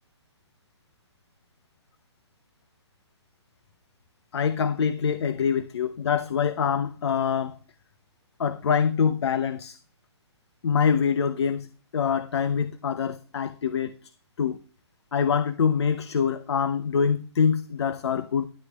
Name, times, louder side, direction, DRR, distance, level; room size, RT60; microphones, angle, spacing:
voice 1, 4.3-7.6 8.4-9.8 10.6-13.9 14.4-14.6 15.1-18.5, left 6 dB, 65° left, 0.8 m, -25 dB
13.0 x 10.5 x 2.3 m
hypercardioid pair, 145°, 15 cm